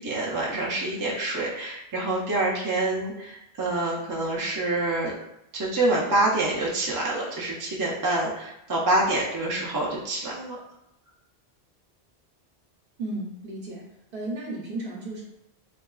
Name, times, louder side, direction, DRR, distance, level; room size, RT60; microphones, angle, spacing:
voice 1, 0.0-5.1 5.5-10.6, right 2 dB, 30° right, -4 dB, 0.4 m, -26 dB
voice 2, 13.0-15.2, right 2 dB, 60° right, -3 dB, 0.9 m, -34 dB
3.3 x 2.3 x 2.3 m, 0.85 s
omnidirectional pair, 1.1 m